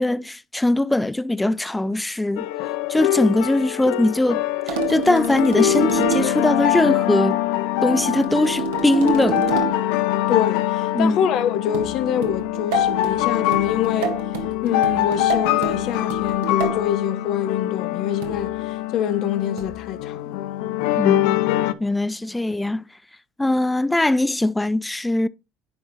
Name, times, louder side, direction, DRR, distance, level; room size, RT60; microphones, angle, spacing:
voice 1, 0.0-2.5 2.9-7.4 7.8-9.7 10.9-11.2 21.0-21.4 21.8-22.9 23.4-25.3, left 1 dB, 10° left, 0.3 m, -21 dB
sound 1, 2.4-21.7, left 14 dB, 75° left, 0.5 m, -24 dB
sound 2, 4.7-6.5 7.9-9.9 11.7-16.9 18.2-18.6 19.6-19.9, right 8 dB, 85° right, 1.3 m, -29 dB
voice 2, 10.3-14.2 14.6-20.4, left 9 dB, 60° left, 0.9 m, -25 dB
10.5 x 3.5 x 4.1 m
supercardioid pair, 95°, 0 cm